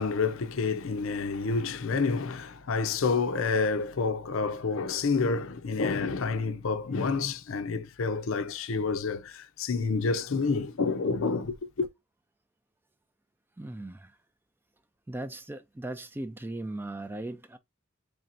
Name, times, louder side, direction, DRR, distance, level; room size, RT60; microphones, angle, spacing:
voice 1, 0.0-11.9, left 4 dB, 70° left, 0.5 m, -29 dB
voice 2, 13.6-14.1 15.1-17.6, right 1 dB, 10° right, 0.3 m, -38 dB
4.3 x 3.3 x 2.5 m
head